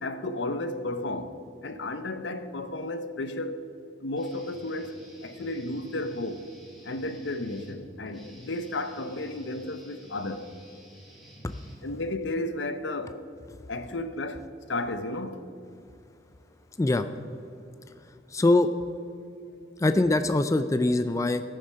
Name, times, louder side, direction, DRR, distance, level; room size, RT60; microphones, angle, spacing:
voice 1, 0.0-1.4 1.6-3.6 4.0-6.4 6.8-10.5 11.8-13.2 13.7-14.4 14.7-15.5, left 2 dB, 80° left, 0.7 m, -33 dB
Guitar, 4.2-12.2, right 1 dB, ahead, 2.7 m, -51 dB
voice 2, 18.3-18.7 19.8-21.4, left 2 dB, 15° left, 0.3 m, -23 dB
17.5 x 6.5 x 5.5 m
head